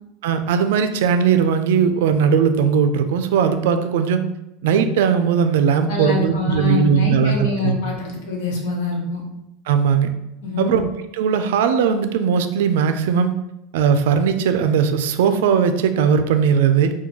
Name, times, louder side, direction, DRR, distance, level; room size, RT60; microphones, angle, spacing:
voice 1, 0.2-4.2 4.6-7.8 9.7-10.1 10.6-10.9 11.2-13.3 13.7-16.9, right 7 dB, 80° right, 9 dB, 0.3 m, -18 dB
voice 2, 5.9-9.2 10.4-10.7, left 3 dB, 65° left, -1 dB, 1.0 m, -25 dB
4.4 x 2.2 x 2.8 m, 0.88 s
supercardioid pair, 180°, 0 cm